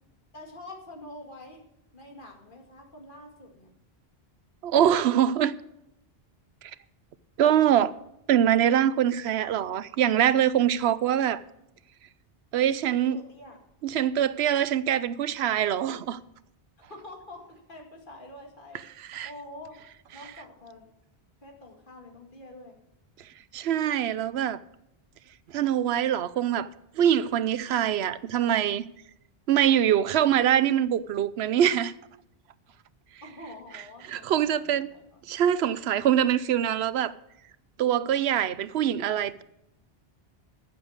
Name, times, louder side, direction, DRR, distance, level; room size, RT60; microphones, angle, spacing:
voice 1, 0.3-1.6 1.9-3.7 13.1-13.6 16.8-19.8 20.1-20.9 21.4-22.8 33.2-35.2, left 1 dB, 55° left, 2.4 m, -46 dB
voice 2, 4.6-5.5 7.4-7.9 8.3-11.4 12.5-13.2 13.8-16.2 19.1-19.3 23.5-24.6 25.5-26.7 27.0-28.9 29.5-31.9 34.1-34.9 35.3-37.1 37.8-39.4, right 10 dB, 85° right, 0.9 m, -24 dB
14.0 x 7.3 x 6.4 m
omnidirectional pair, 1.1 m